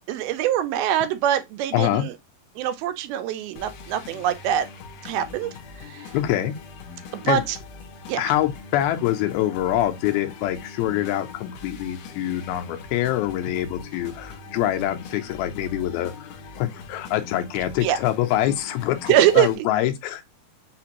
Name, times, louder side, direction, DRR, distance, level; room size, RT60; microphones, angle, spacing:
voice 1, 0.1-2.1 2.6-4.7 5.0-5.5 5.8-6.1 7.1-7.6 8.1-8.3 17.8-18.0 19.1-19.7, right 11 dB, 85° right, 2.5 m, -23 dB
voice 2, 1.7-2.0 6.1-6.5 7.3-7.4 8.2-16.3 16.5-20.2, left 12 dB, 90° left, 2.6 m, -25 dB
sound 1, 3.6-19.6, left 4 dB, 75° left, 2.1 m, -42 dB
6.0 x 2.5 x 2.9 m
omnidirectional pair, 4.3 m